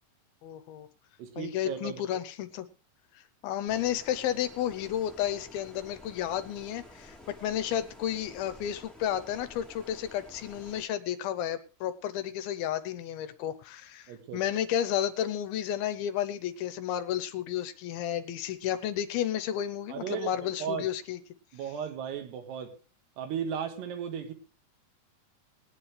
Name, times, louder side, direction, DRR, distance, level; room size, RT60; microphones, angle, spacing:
voice 1, 0.4-0.9 1.4-2.7 3.4-21.2, left 10 dB, 75° left, 2.5 m, -32 dB
voice 2, 1.2-2.2 14.1-14.6 19.9-20.3 20.6-20.9 21.5-22.7 23.2-24.3, right 8 dB, 85° right, 3.7 m, -36 dB
Stream, 3.7-10.9, left 2 dB, ahead, 1.6 m, -51 dB
21.0 x 9.8 x 3.3 m
omnidirectional pair, 4.6 m